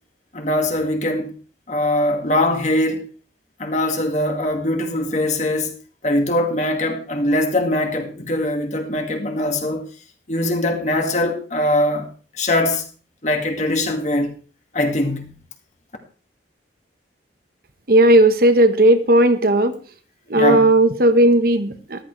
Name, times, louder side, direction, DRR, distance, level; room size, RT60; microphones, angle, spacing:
voice 1, 0.3-1.3 1.7-3.0 3.6-5.7 6.0-9.9 10.3-12.1 12.4-12.8 13.2-14.3 14.7-15.4 20.3-20.7, left 1 dB, 40° left, 2.0 m, -21 dB
voice 2, 17.9-19.7 20.3-22.0, right 1 dB, 55° right, 1.2 m, -15 dB
14.0 x 13.0 x 3.3 m
head